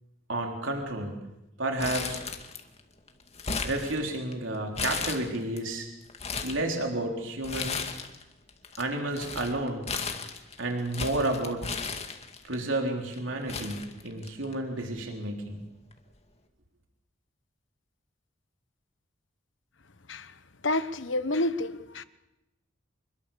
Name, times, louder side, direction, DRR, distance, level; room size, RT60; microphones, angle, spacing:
voice 1, 0.3-1.1 1.6-2.2 3.6-5.9 6.4-7.8 8.8-9.8 10.6-11.7 12.4-15.6, right 2 dB, 75° right, 2 dB, 3.9 m, -31 dB
Crumpling crinkling, 1.8-2.8 3.1-4.3 4.7-5.6 6.0-6.6 7.4-8.2 8.5-12.5 13.1-13.2 13.5-14.5 14.8-14.9 15.9-16.2, left 5 dB, 35° left, 2.2 m, -35 dB
voice 2, 20.6-22.0, left 2 dB, 65° left, 13 dB, 1.2 m, -29 dB
26.5 x 22.0 x 7.0 m, 0.91 s
head